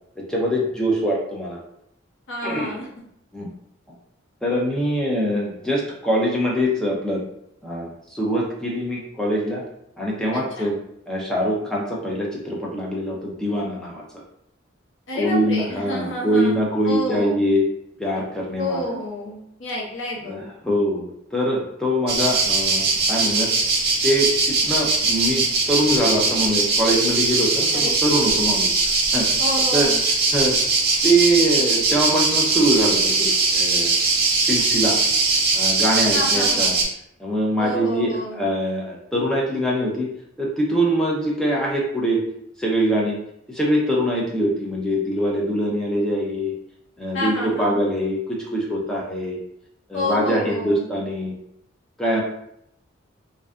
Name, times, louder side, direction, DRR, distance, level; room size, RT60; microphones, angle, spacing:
voice 1, 0.2-1.6 2.4-2.7 3.3-3.5 4.4-7.2 7.6-9.6 10.0-10.8 11.1-14.0 15.1-17.6 18.0-18.8 20.2-23.5 24.0-28.8 29.1-29.3 29.7-29.9 30.3-30.6 31.0-34.0 34.4-35.0 35.5-36.8 37.2-40.1 40.4-42.2 42.6-43.2 43.5-46.5 47.0-49.4 49.9-51.3 52.0-52.2, equal, 5° left, -4 dB, 0.4 m, -23 dB
voice 2, 2.3-2.9 10.3-10.7 15.1-17.4 18.6-20.4 27.7-27.9 29.4-30.0 36.1-36.7 37.6-38.4 47.1-47.8 49.9-50.8, left 1 dB, 70° left, -3 dB, 0.7 m, -29 dB
sound 1, 22.1-36.8, right 3 dB, 50° right, 0.5 m, -20 dB
2.5 x 2.3 x 2.2 m, 0.76 s
head